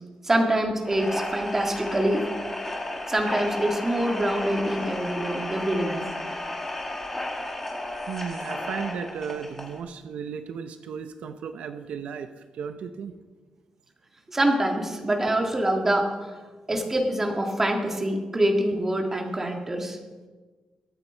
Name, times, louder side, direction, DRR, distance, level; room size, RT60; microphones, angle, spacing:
voice 1, 0.2-2.3 3.1-6.1 14.3-16.3 16.7-20.0, right 1 dB, 15° right, 2 dB, 1.9 m, -25 dB
sound 1, 0.8-9.8, left 1 dB, 10° left, 2.2 m, -33 dB
voice 2, 8.1-13.1, right 6 dB, 80° right, 8 dB, 0.7 m, -35 dB
23.0 x 8.9 x 4.5 m, 1.3 s
wide cardioid pair, 160°, 2 cm